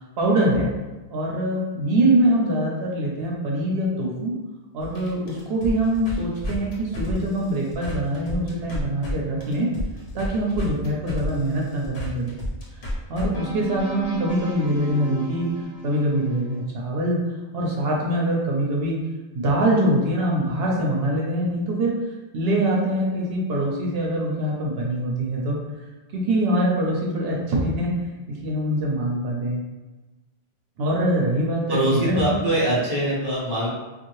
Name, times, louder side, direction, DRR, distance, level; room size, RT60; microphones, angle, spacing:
voice 1, 0.2-0.7 1.1-4.3 4.7-9.7 10.1-12.3 13.1-15.5 15.8-17.2 17.5-19.0 19.3-21.9 22.3-25.6 26.1-27.9 28.3-29.6 30.8-32.4, right 1 dB, 75° right, -2 dB, 0.8 m, -23 dB
sound 1, 4.8-9.1 9.4-16.6, equal, 85° left, 1.0 m, -33 dB
voice 2, 31.7-33.7, right 1 dB, 25° right, -6 dB, 0.7 m, -23 dB
2.6 x 2.4 x 3.0 m, 1.1 s
omnidirectional pair, 1.0 m